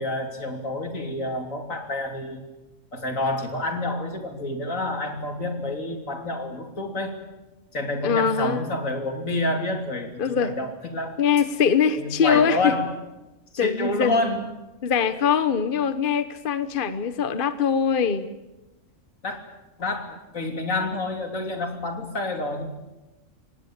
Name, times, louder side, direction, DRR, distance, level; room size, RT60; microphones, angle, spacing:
voice 1, 0.0-2.4 2.9-7.2 7.7-11.2 11.9-12.9 13.5-14.5 19.2-19.4 19.8-22.7, left 2 dB, 85° left, 4 dB, 3.6 m, -28 dB
voice 2, 8.0-8.7 10.2-10.5 11.2-12.8 13.6-14.1 14.8-18.3, left 7 dB, 45° left, 12 dB, 1.2 m, -22 dB
25.5 x 19.0 x 8.9 m, 1.0 s
omnidirectional pair, 1.3 m